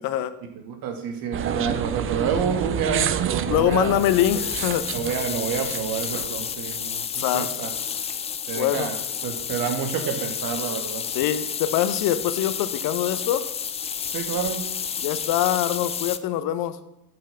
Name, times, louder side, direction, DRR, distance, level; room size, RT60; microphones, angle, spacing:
voice 1, 0.6-4.0 4.9-7.7 8.5-11.0 14.1-14.6, right 7 dB, 50° right, 6 dB, 2.1 m, -29 dB
sound 1, 1.3-6.8, right 9 dB, 30° right, 0.6 m, -29 dB
voice 2, 3.5-4.9 7.1-7.6 8.5-8.9 11.1-13.4 15.0-16.8, left 11 dB, 50° left, 13 dB, 0.9 m, -24 dB
sound 2, 3.7-16.2, left 7 dB, 15° left, 0.4 m, -31 dB
7.4 x 7.0 x 6.8 m, 0.86 s
hypercardioid pair, 85°, 45 cm